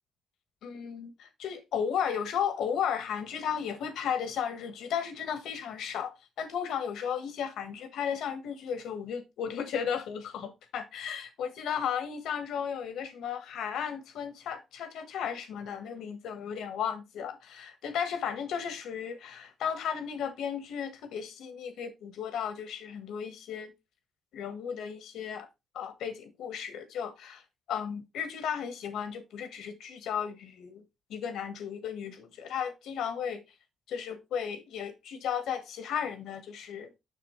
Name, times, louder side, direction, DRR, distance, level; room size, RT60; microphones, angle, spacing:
voice 1, 0.6-23.7 24.3-25.5 25.7-27.4 27.7-30.8 31.1-33.4 33.9-36.9, left 8 dB, 80° left, 1.5 m, -34 dB
6.9 x 6.5 x 3.2 m
cardioid pair, 90°, 0 cm